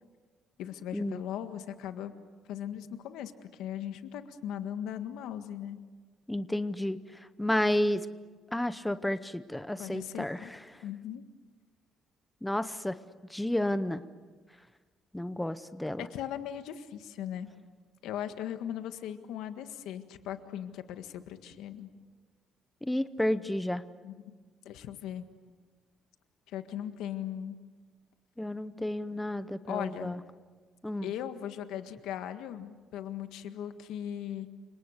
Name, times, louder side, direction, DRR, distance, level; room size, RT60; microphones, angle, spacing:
voice 1, 0.6-2.1 2.5-5.8 9.8-10.5 10.8-11.2 16.0-17.5 18.0-21.9 24.0-24.3 24.6-25.3 26.5-27.6 29.7-30.2 31.0-34.5, left 10 dB, 90° left, 8 dB, 1.7 m, -38 dB
voice 2, 6.3-7.0 7.4-8.1 8.5-10.6 12.4-13.0 13.3-14.0 15.1-16.1 22.8-23.8 28.4-30.2 30.8-31.1, left 1 dB, 5° left, 12 dB, 0.7 m, -31 dB
29.5 x 26.0 x 6.6 m, 1.4 s
cardioid pair, 165°, 0 cm